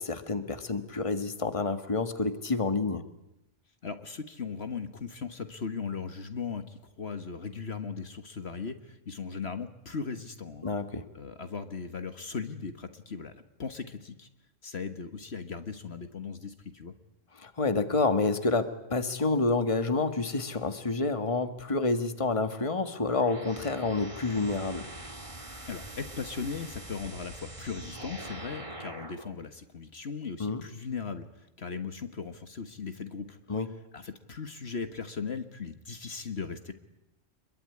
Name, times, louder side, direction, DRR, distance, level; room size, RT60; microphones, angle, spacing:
voice 1, 0.0-3.0 10.6-11.1 17.4-24.9 30.4-30.6 33.5-33.7, left 3 dB, 25° left, 9 dB, 1.7 m, -28 dB
voice 2, 3.8-10.7 11.1-14.3 14.6-16.9 25.7-33.4 33.9-36.7, left 5 dB, 60° left, 9 dB, 1.8 m, -38 dB
sound 1, 22.9-29.3, right 1 dB, 25° right, 2.1 m, -43 dB
27.0 x 22.5 x 9.8 m, 0.84 s
omnidirectional pair, 1.3 m